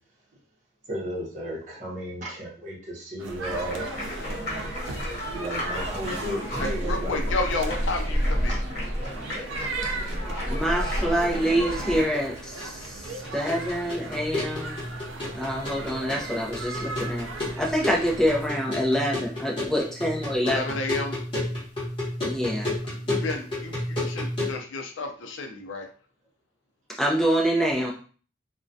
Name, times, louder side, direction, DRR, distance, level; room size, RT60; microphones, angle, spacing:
voice 1, 0.9-3.8 4.2-4.7 5.3-7.2 8.5-8.6 9.6-9.7, right 1 dB, 40° right, -4 dB, 0.8 m, -34 dB
sound 1, 3.2-18.5, right 3 dB, 80° right, 0.4 m, -38 dB
sound 2, 3.4-12.0, equal, 50° left, 0.9 m, -30 dB
voice 2, 6.6-8.6 20.4-21.1 23.0-25.9, left 3 dB, 75° left, 4 dB, 0.4 m, -31 dB
voice 3, 10.5-14.8 15.3-17.3 17.6-20.6 22.2-22.7 27.0-27.9, equal, ahead, -2 dB, 0.4 m, -26 dB
sound 3, 11.7-24.6, left 1 dB, 25° left, 0.9 m, -32 dB
2.3 x 2.1 x 2.6 m, 0.41 s
head